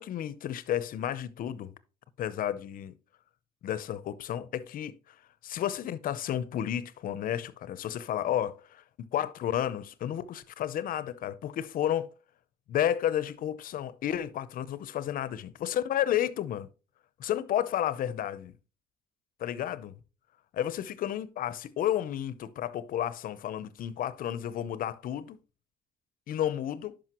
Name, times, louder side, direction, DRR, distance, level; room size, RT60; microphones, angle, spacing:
voice 1, 0.0-1.7 2.2-2.9 3.6-5.1 5.4-8.8 9.1-12.1 12.7-16.7 17.2-18.5 19.4-20.0 20.5-25.4 26.3-27.0, left 11 dB, 55° left, 0.6 m, -32 dB
11.0 x 5.2 x 2.9 m
cardioid pair, 110°, 17 cm